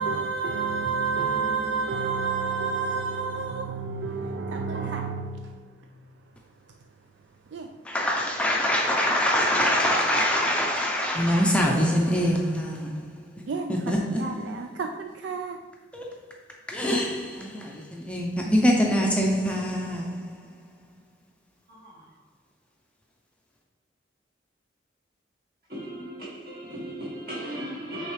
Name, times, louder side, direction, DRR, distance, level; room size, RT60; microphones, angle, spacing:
voice 1, 0.0-5.7 7.5-7.8 13.5-15.6, right 4 dB, 70° right, 0.4 m, -30 dB
voice 2, 7.8-13.0 13.7-14.5 15.9-16.1 16.7-20.5, equal, 5° left, 0.5 m, -24 dB
voice 3, 21.7-22.2 25.7-28.1, right 1 dB, 50° right, 2.1 m, -37 dB
8.6 x 3.6 x 3.3 m
head